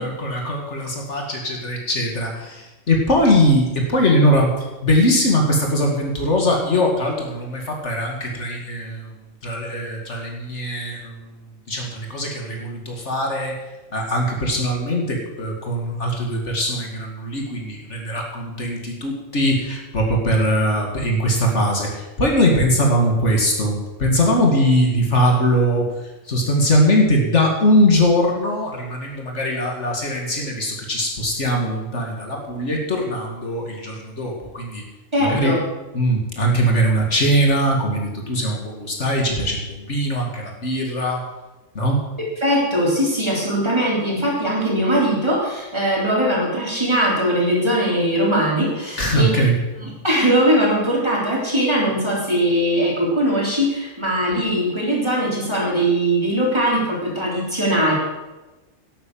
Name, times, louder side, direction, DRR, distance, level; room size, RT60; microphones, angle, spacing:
voice 1, 0.0-9.1 9.4-11.3 11.7-13.5 13.9-23.7 24.0-25.9 26.3-34.8 35.2-35.6 35.9-41.2 41.7-42.0 49.0-49.5, equal, 65° left, 0 dB, 2.5 m, -21 dB
voice 2, 35.1-35.6 42.4-49.3 50.0-57.9, equal, 20° right, -4 dB, 3.8 m, -20 dB
11.5 x 8.7 x 7.5 m, 1.1 s
omnidirectional pair, 1.3 m